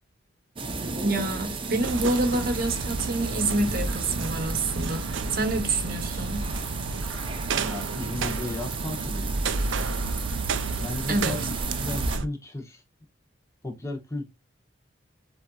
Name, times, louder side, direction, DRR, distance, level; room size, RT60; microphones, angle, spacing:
sound 1, 0.6-12.2, right 3 dB, 25° right, 0.7 m, -34 dB
voice 1, 1.0-6.4 11.1-11.5, right 2 dB, 45° right, 1.1 m, -27 dB
sound 2, 1.8-12.3, right 4 dB, 70° right, 0.5 m, -31 dB
voice 2, 7.6-9.5 10.8-11.5 11.8-12.8 13.6-14.2, left 2 dB, 15° left, 1.3 m, -34 dB
7.6 x 2.9 x 2.3 m
head